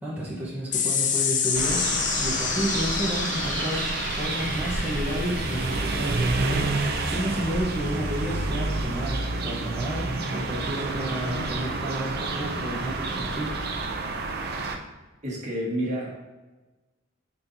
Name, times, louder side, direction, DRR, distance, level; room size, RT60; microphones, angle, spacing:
voice 1, 0.0-1.9 2.2-6.7 7.0-13.6, equal, 10° right, -8 dB, 1.1 m, -31 dB
sound 1, 0.7-7.5, left 6 dB, 40° left, 0.6 m, -29 dB
sound 2, 1.5-14.8, right 3 dB, 55° right, 0.6 m, -29 dB
voice 2, 15.2-16.1, equal, 40° right, -3 dB, 1.6 m, -29 dB
9.2 x 4.6 x 2.7 m, 1.2 s
head